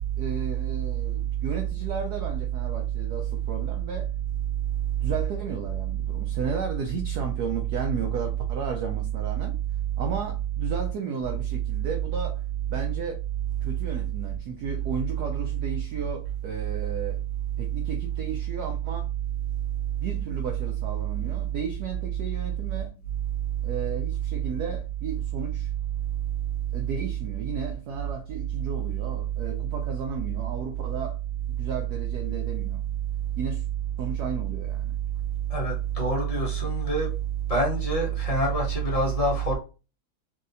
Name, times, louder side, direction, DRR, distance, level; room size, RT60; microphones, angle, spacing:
voice 1, 0.2-4.1 5.0-9.6 10.0-12.4 12.7-13.2 13.6-17.2 17.6-19.1 20.0-23.0 23.6-25.7 26.7-31.2 31.5-32.9 33.4-33.6 34.0-34.9, right 5 dB, 75° right, 0.9 m, -34 dB
voice 2, 35.5-37.1 37.5-39.6, right 3 dB, 45° left, 0.4 m, -25 dB
3.1 x 2.7 x 2.6 m
omnidirectional pair, 2.2 m